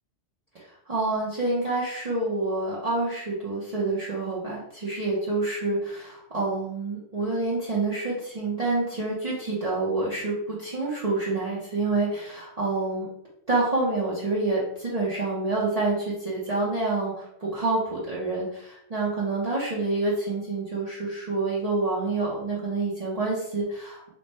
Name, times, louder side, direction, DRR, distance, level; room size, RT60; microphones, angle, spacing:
voice 1, 0.9-13.1 13.5-24.1, right 2 dB, 35° right, -7 dB, 0.7 m, -27 dB
3.2 x 2.2 x 4.2 m, 0.76 s
omnidirectional pair, 1.2 m